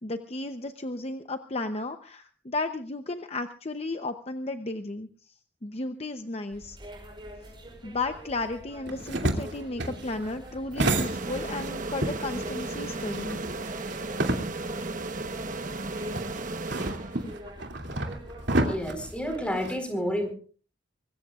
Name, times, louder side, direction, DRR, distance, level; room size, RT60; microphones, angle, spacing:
voice 1, 0.0-6.8 7.8-13.4, left 2 dB, 35° left, 7 dB, 0.8 m, -34 dB
sound 1, 6.5-19.6, equal, 25° right, 5.5 m, -45 dB
sound 2, 8.9-11.7 12.0-14.9 15.2-15.3 16.1-19.8, right 2 dB, 70° right, 2.8 m, -30 dB
sound 3, 10.9-17.6, right 2 dB, 45° right, 1.1 m, -35 dB
voice 2, 18.7-20.3, equal, 5° left, 5 dB, 4.4 m, -30 dB
24.5 x 21.0 x 2.5 m, 0.42 s
head